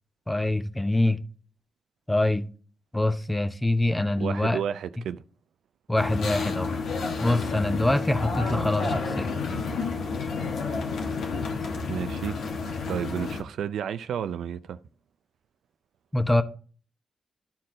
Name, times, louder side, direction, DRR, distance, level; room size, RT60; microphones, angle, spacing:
voice 1, 0.3-1.2 2.1-2.4 2.9-4.6 5.9-6.7 7.2-9.3 16.1-16.4, left 1 dB, 15° left, 0.9 m, -24 dB
voice 2, 4.2-5.2 11.9-12.4 12.9-14.8, right 9 dB, 85° right, 0.4 m, -31 dB
sound 1, 6.0-13.4, left 4 dB, 85° left, 1.3 m, -30 dB
11.5 x 4.4 x 3.7 m
cardioid pair, 55°, 0 cm